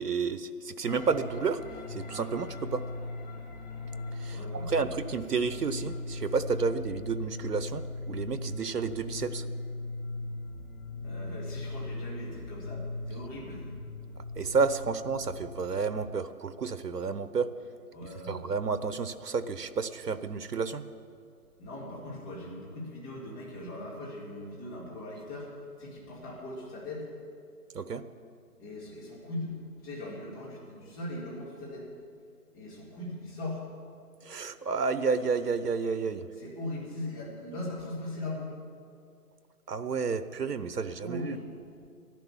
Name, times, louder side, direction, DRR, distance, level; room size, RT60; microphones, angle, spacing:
voice 1, 0.0-1.6 1.9-2.8 4.2-9.4 14.4-17.5 18.3-20.8 27.7-28.0 34.2-36.2 39.7-41.4, right 5 dB, 90° right, 12 dB, 1.0 m, -31 dB
sound 1, 0.8-16.1, left 2 dB, 30° left, 1.2 m, -39 dB
voice 2, 4.3-4.9 11.0-13.7 17.9-18.4 21.6-27.1 28.6-31.9 32.5-33.6 36.4-38.5 41.0-41.5, left 1 dB, 15° left, -5 dB, 2.0 m, -40 dB
13.0 x 10.5 x 7.2 m, 2.4 s
figure-of-eight pair, 165°, 46 cm